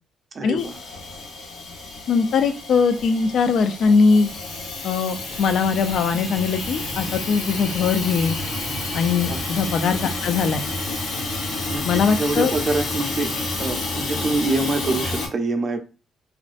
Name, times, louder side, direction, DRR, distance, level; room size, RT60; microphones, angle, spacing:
voice 1, 0.3-0.8 9.3-9.4 11.7-13.3 13.6-15.8, right 3 dB, 40° right, 7 dB, 0.4 m, -25 dB
Hiss / Toilet flush / Trickle dribble, 0.6-15.3, left 2 dB, 85° left, 1.0 m, -30 dB
voice 2, 2.1-4.3 4.8-8.4 8.9-10.6 11.8-12.5, left 5 dB, 65° left, 9 dB, 0.3 m, -20 dB
2.5 x 2.1 x 2.4 m, 0.33 s
cardioid pair, 90°, 0 cm